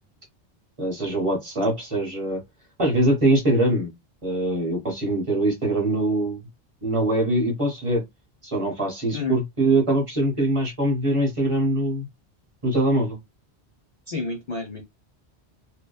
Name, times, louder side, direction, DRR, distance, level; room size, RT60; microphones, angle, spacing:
voice 1, 0.8-2.4 2.8-3.9 4.2-6.4 6.8-8.0 8.4-12.1 12.6-13.2, right 1 dB, 35° right, 0.8 m, -23 dB
voice 2, 14.1-14.8, left 4 dB, 60° left, 0.4 m, -29 dB
2.6 x 2.2 x 2.2 m
omnidirectional pair, 1.1 m